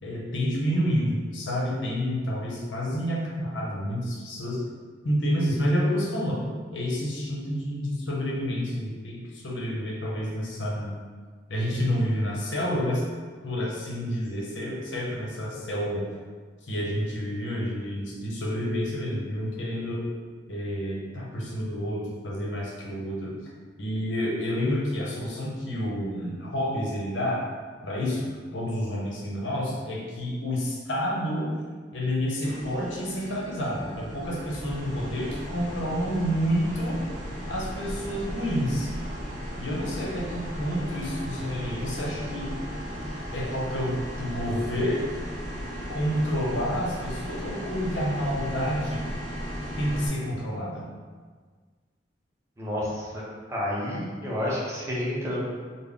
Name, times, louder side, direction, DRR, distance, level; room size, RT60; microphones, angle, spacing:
voice 1, 0.0-4.6 5.0-6.4 6.7-10.9 11.5-13.0 13.4-16.1 16.7-20.0 20.5-23.4 23.8-27.4 27.8-31.5 31.9-37.0 37.5-38.9 39.6-42.5 43.3-45.0 45.9-49.0 49.8-50.8, equal, 85° left, -3 dB, 0.8 m, -29 dB
sound 1, 32.4-50.1, equal, 80° right, 0.8 m, -36 dB
voice 2, 52.6-53.2 53.5-55.4, left 1 dB, 15° right, -6 dB, 0.7 m, -30 dB
3.6 x 2.1 x 3.6 m, 1.5 s
head